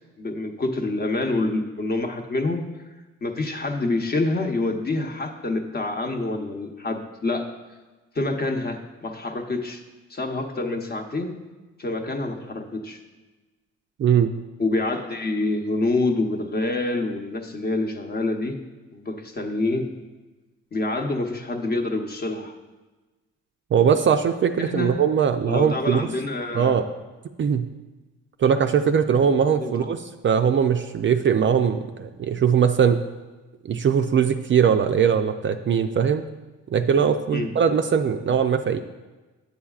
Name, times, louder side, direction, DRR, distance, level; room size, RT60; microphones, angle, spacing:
voice 1, 0.2-2.7 3.2-7.5 8.1-9.8 10.1-11.4 11.8-13.0 14.6-18.6 18.9-19.9 20.7-22.5 24.6-25.0 25.5-26.8 29.6-29.9 37.3-37.5, left 2 dB, 30° left, 4 dB, 0.9 m, -27 dB
voice 2, 14.0-14.3 23.7-26.1 26.5-26.8 27.4-27.7 28.4-33.0 33.7-36.3 36.7-38.8, right 7 dB, 40° right, 6 dB, 0.4 m, -20 dB
8.5 x 8.0 x 2.4 m, 1.2 s
cardioid pair, 90°, 30 cm